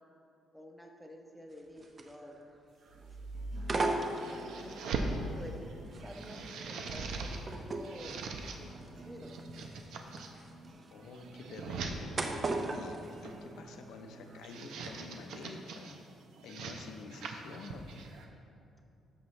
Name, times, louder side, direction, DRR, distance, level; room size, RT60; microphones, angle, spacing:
voice 1, 0.5-2.5 2.9-3.1 4.3-8.2 8.6-9.4, equal, ahead, 1 dB, 0.9 m, -50 dB
sound 1, 1.5-2.5 2.8-3.1 3.6-4.7 5.3-14.0 14.3-14.9 15.3-15.4, right 2 dB, 35° right, 0.6 m, -38 dB
sound 2, 2.9-5.2 5.7-7.4 7.7-8.6 9.2-10.3 10.9-12.0 13.0-13.5 14.2-16.0 16.4-18.3, right 4 dB, 80° right, 0.7 m, -41 dB
sound 3, 3.3-14.5, right 2 dB, 50° right, 1.3 m, -53 dB
voice 2, 10.9-16.0 16.4-18.1, left 4 dB, 75° left, 5 dB, 0.7 m, -48 dB
12.5 x 5.9 x 3.2 m, 2.6 s
cardioid pair, 120°, 0 cm